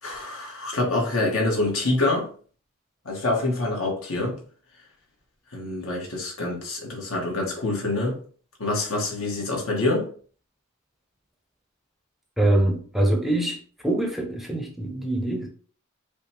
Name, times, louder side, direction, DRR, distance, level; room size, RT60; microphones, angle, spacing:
voice 1, 0.0-2.3 3.0-4.4 5.5-8.2 8.6-10.1, left 2 dB, 85° left, 1.4 m, -26 dB
voice 2, 12.4-13.6 13.8-15.5, right 1 dB, ahead, 0.5 m, -24 dB
5.0 x 2.4 x 2.9 m
head